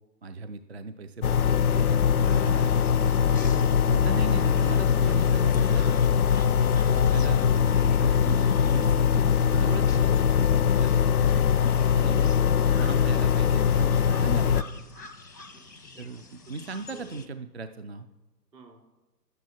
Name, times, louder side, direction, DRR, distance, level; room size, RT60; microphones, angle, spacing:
voice 1, 0.2-3.2 3.9-6.0 6.9-9.2 9.5-10.1 10.6-11.1 11.9-12.3 12.8-14.9 16.0-18.1, right 4 dB, 45° right, 9 dB, 0.4 m, -38 dB
sound 1, 1.2-14.6, left 7 dB, 60° left, 0.5 m, -22 dB
sound 2, 2.2-17.3, left 3 dB, 85° left, 1.5 m, -47 dB
voice 2, 15.5-16.2 16.9-17.2 18.5-18.8, right 3 dB, 70° right, 1 dB, 3.2 m, -52 dB
11.0 x 9.3 x 5.7 m, 1.1 s
figure-of-eight pair, 135°, 49 cm